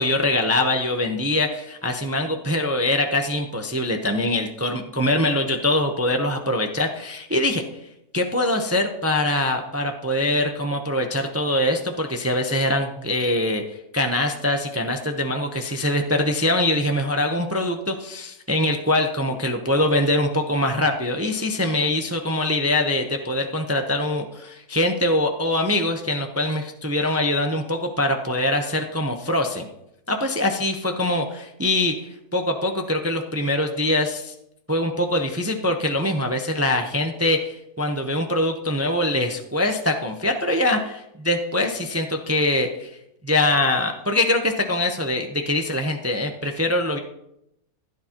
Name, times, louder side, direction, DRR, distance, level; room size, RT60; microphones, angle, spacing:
voice 1, 0.0-7.6 8.1-29.7 30.1-34.3 34.7-42.9 43.2-47.0, left 1 dB, 15° right, 4 dB, 0.5 m, -23 dB
16.0 x 10.5 x 2.9 m, 0.83 s
omnidirectional pair, 1.6 m